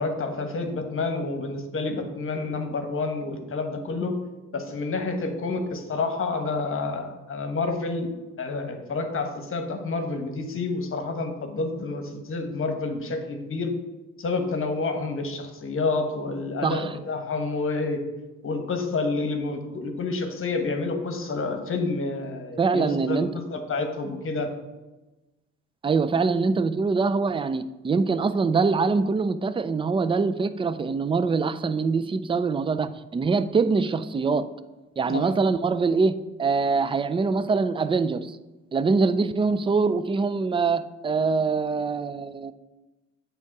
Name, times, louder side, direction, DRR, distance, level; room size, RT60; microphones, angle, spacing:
voice 1, 0.0-4.1 4.5-8.1 8.4-13.7 14.2-18.0 18.4-24.5 35.1-35.2, left 3 dB, 45° left, 5 dB, 1.2 m, -29 dB
voice 2, 22.6-23.3 25.8-34.5 35.0-38.4 38.7-42.5, right 4 dB, 20° right, 13 dB, 0.3 m, -24 dB
8.3 x 3.6 x 5.9 m, 1.1 s
cardioid pair, 90°, 30 cm